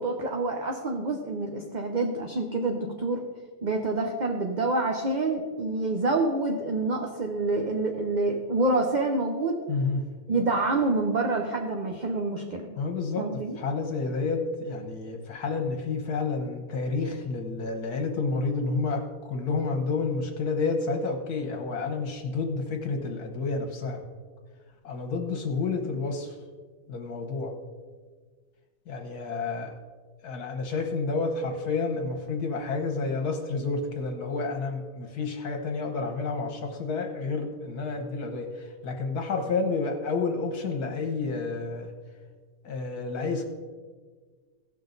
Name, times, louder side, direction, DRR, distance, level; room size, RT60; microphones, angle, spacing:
voice 1, 0.0-3.2 3.6-9.6 10.3-12.7 13.2-13.6, right 2 dB, 40° right, 2 dB, 0.7 m, -27 dB
voice 2, 9.7-10.0 12.8-13.3 13.6-24.0 24.8-26.3 26.9-27.5 28.9-29.7 30.2-41.9 42.6-43.4, left 4 dB, 75° left, 3 dB, 1.6 m, -30 dB
16.5 x 6.2 x 3.9 m, 1.5 s
omnidirectional pair, 1.7 m